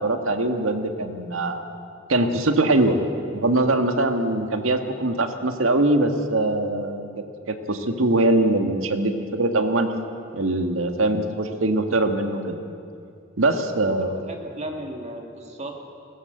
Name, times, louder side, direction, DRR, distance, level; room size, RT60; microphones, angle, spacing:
voice 1, 0.0-1.6 2.1-3.0 3.3-7.1 7.5-9.9 10.3-12.6 13.4-14.1, right 2 dB, 85° right, 6 dB, 1.7 m, -22 dB
voice 2, 14.0-15.8, right 1 dB, 35° right, 3 dB, 2.2 m, -35 dB
20.5 x 18.0 x 8.0 m, 2.5 s
head